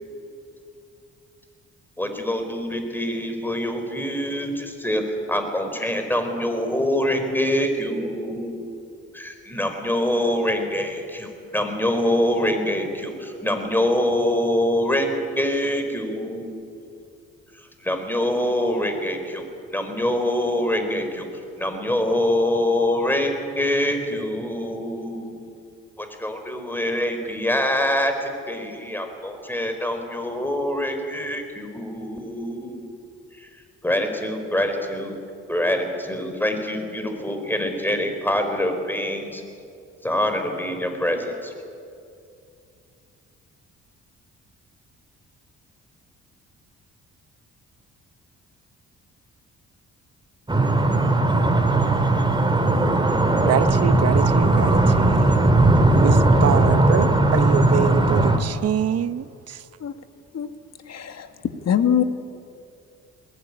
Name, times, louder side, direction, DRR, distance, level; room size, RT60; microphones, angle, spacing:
voice 1, 2.0-5.0 5.3-8.7 9.1-16.6 17.8-21.3 21.6-25.5 26.0-32.9 33.3-33.5 33.8-35.2 35.5-39.4 40.0-41.6, left 1 dB, 5° left, 4.2 m, -25 dB
sound 1, 50.5-58.4, right 2 dB, 15° right, 2.5 m, -18 dB
voice 2, 53.4-55.4 55.9-59.6, right 9 dB, 55° right, 1.0 m, -26 dB
voice 3, 60.9-61.3 61.7-62.0, left 9 dB, 60° left, 1.9 m, -22 dB
21.0 x 18.5 x 9.8 m
cardioid pair, 90°, 30 cm